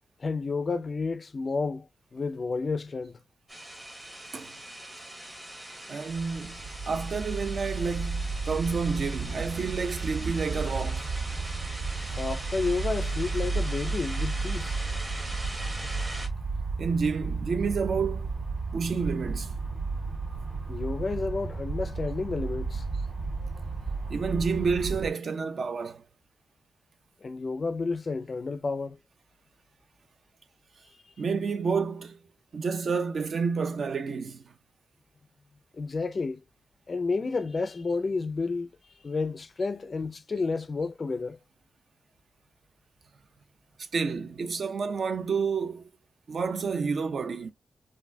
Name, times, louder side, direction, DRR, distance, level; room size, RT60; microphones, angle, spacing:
voice 1, 0.2-3.2 12.2-14.8 20.7-22.9 27.2-29.0 35.7-36.4 36.9-38.7 39.0-41.4, left 4 dB, 35° left, 0.4 m, -31 dB
sound 1, 3.5-16.3, right 1 dB, 15° right, 0.9 m, -41 dB
voice 2, 5.9-6.6 6.9-11.1 16.8-18.3 18.7-19.5 24.1-26.0 31.2-32.2 32.5-34.4 43.9-45.9 46.3-47.5, right 5 dB, 50° right, 0.5 m, -29 dB
sound 2, 6.1-25.1, right 4 dB, 75° right, 2.2 m, -33 dB
4.0 x 2.5 x 2.6 m
wide cardioid pair, 155°, 0 cm